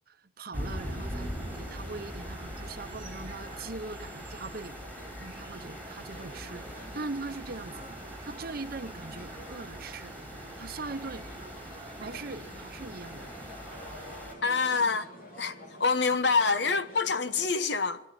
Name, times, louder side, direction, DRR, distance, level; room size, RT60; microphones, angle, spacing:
voice 1, 0.1-4.8 5.2-7.9 8.2-10.2 10.6-11.3 12.0-13.5 14.8-15.0, right 3 dB, 50° right, 0.9 m, -41 dB
sound 1, 0.5-14.3, equal, 10° left, 3.8 m, -42 dB
sound 2, 0.7-14.2, right 2 dB, 25° right, 1.3 m, -49 dB
sound 3, 0.9-17.5, left 1 dB, 45° left, 3.8 m, -49 dB
voice 2, 14.4-15.1 15.4-15.5 15.8-18.0, left 4 dB, 60° left, 1.1 m, -26 dB
20.5 x 14.0 x 9.6 m
head